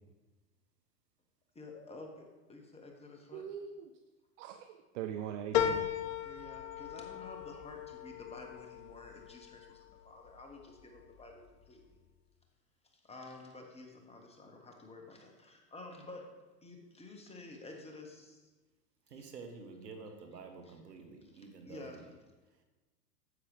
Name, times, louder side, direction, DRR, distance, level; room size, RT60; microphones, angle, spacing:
voice 1, 1.5-3.5 6.1-11.9 12.8-16.3 16.6-18.4 20.6-20.7 21.3-22.0, left 2 dB, 15° left, 2 dB, 1.2 m, -51 dB
voice 2, 3.3-3.9 4.4-5.9, right 9 dB, 50° right, 7 dB, 0.6 m, -41 dB
sound 1, 5.5-10.3 10.8-11.5 11.9-12.0, left 10 dB, 55° left, 0.7 m, -37 dB
voice 3, 19.1-22.0, right 4 dB, 85° right, 5 dB, 1.3 m, -49 dB
9.6 x 7.7 x 3.4 m, 1.2 s
hypercardioid pair, 100°, 47 cm